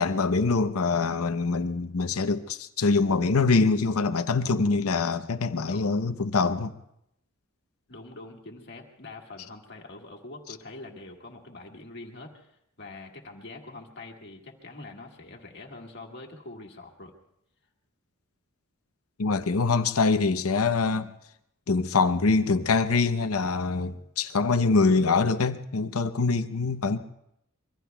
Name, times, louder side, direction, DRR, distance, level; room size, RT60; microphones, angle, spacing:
voice 1, 0.0-6.7 19.2-21.1 21.7-27.0, left 4 dB, 80° left, 0.7 m, -24 dB
voice 2, 5.6-6.0 7.9-17.1, left 2 dB, 55° left, 1.7 m, -44 dB
25.0 x 23.0 x 2.3 m
head